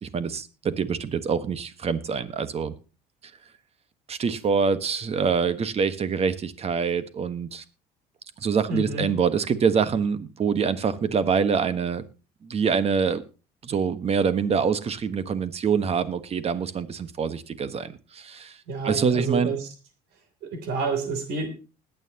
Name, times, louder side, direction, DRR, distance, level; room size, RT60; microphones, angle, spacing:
voice 1, 0.0-2.7 4.1-7.6 8.4-12.0 12.4-13.2 13.6-18.5 18.8-19.5, right 6 dB, 40° right, 13 dB, 1.4 m, -25 dB
voice 2, 8.6-9.1 18.7-19.7 20.4-21.5, right 4 dB, 80° right, 7 dB, 3.3 m, -29 dB
20.5 x 9.2 x 2.9 m, 0.33 s
cardioid pair, 105°, 16 cm